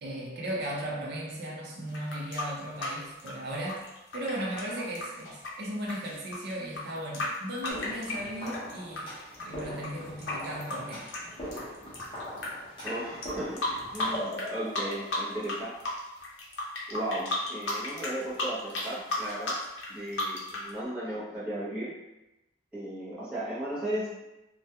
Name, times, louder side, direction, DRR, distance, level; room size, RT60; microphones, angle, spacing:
voice 1, 0.0-3.8 4.1-9.1 9.4-11.0, right 1 dB, 55° right, -3 dB, 0.6 m, -36 dB
sound 1, 1.9-9.0 9.3-12.5 12.8-12.9 13.2-14.5 14.7-15.6 15.8-20.7, left 2 dB, 65° left, 0.6 m, -34 dB
sound 2, 7.7-15.8, equal, 25° left, 0.8 m, -41 dB
voice 2, 12.8-13.7 13.9-15.7 16.9-19.5 19.9-21.9 22.7-24.3, right 1 dB, 5° right, -12 dB, 0.8 m, -35 dB
2.3 x 2.2 x 2.8 m, 0.96 s
head